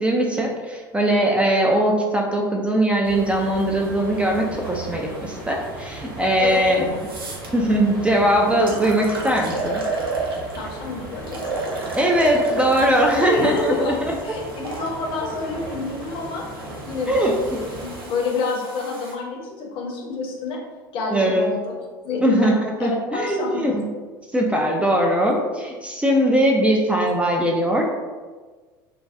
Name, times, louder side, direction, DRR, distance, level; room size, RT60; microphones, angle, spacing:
voice 1, 0.0-6.9 7.5-9.8 11.9-13.9 17.1-17.3 21.1-21.5 22.2-23.8 24.3-27.8, right 1 dB, 10° right, -1 dB, 0.3 m, -20 dB
sound 1, 3.0-18.1, right 2 dB, 45° right, 0.9 m, -37 dB
voice 2, 6.4-6.9 10.5-11.5 13.3-14.0 14.2-16.4 16.8-20.6 20.9-21.7 22.0-22.5 22.8-23.8, left 3 dB, 45° left, 0 dB, 0.6 m, -28 dB
sound 2, 6.5-6.6 7.0-7.5 8.2-8.3 8.7-10.7 11.3-14.9 15.7-19.1, right 3 dB, 85° right, 0.4 m, -32 dB
2.3 x 2.1 x 2.5 m, 1.4 s
figure-of-eight pair, 70°, 12 cm